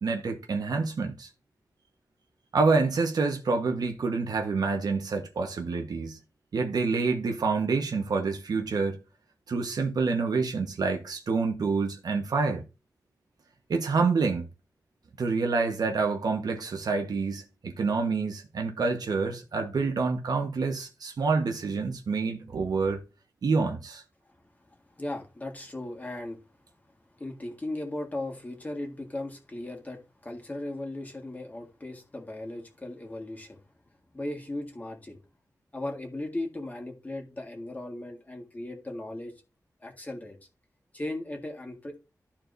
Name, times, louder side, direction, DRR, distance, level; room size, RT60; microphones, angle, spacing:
voice 1, 0.0-1.3 2.5-6.2 6.5-9.0 9.5-12.6 13.7-14.5 15.2-23.0 23.4-24.0, right 4 dB, 90° right, 1.2 m, -27 dB
voice 2, 24.7-26.4 27.2-33.6 34.1-35.2 35.7-39.3 39.8-40.4 40.9-42.0, left 1 dB, 25° left, 1.7 m, -37 dB
13.0 x 4.4 x 2.6 m
wide cardioid pair, 120°, 7 cm